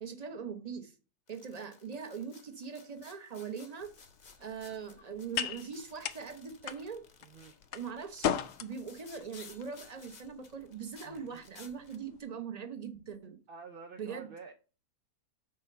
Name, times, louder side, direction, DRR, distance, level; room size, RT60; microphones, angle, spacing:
voice 1, 0.0-0.9 1.3-3.9 4.4-7.0 7.7-13.4 14.0-14.3, right 6 dB, 30° right, 0.9 m, -41 dB
sound 1, 1.3-12.0, left 5 dB, 35° left, 0.8 m, -57 dB
sound 2, 3.8-12.2, left 9 dB, 65° left, 0.9 m, -40 dB
voice 2, 7.2-7.6 11.0-11.5 13.5-14.5, right 5 dB, 55° right, 0.6 m, -49 dB
6.6 x 4.6 x 6.6 m
omnidirectional pair, 1.6 m